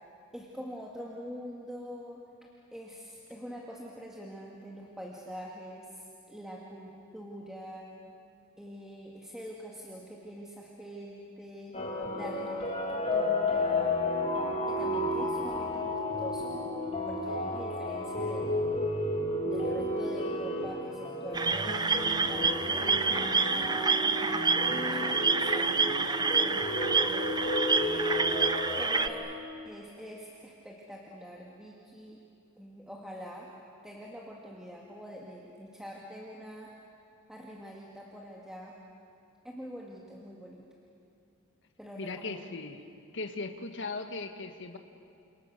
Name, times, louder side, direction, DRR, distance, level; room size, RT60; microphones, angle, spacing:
voice 1, 0.3-2.2 2.7-7.9 8.6-11.8 12.1-12.8 13.1-14.0 14.7-16.7 17.1-18.6 19.4-23.1 23.5-27.4 28.8-29.3 29.6-32.2 32.6-33.5 33.8-36.7 37.3-38.7 39.4-40.6 41.8-42.5, equal, 5° right, -3 dB, 2.2 m, -44 dB
sound 1, 11.7-29.3, left 1 dB, 30° left, 3.7 m, -32 dB
sound 2, 21.3-29.1, right 4 dB, 20° right, 0.8 m, -28 dB
voice 2, 42.0-42.8 43.1-44.8, left 3 dB, 60° left, 6 dB, 1.8 m, -38 dB
29.5 x 27.0 x 6.8 m, 2.6 s
head